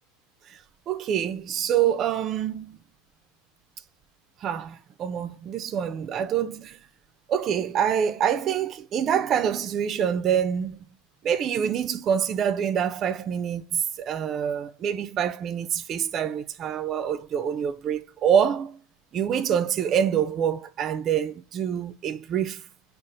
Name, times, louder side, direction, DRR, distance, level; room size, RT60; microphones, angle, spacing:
voice 1, 0.9-2.8 4.4-6.8 7.3-10.8 11.2-18.8 19.1-22.6, right 8 dB, 40° right, 0.3 m, -26 dB
3.7 x 2.4 x 3.8 m
supercardioid pair, 120°, 0 cm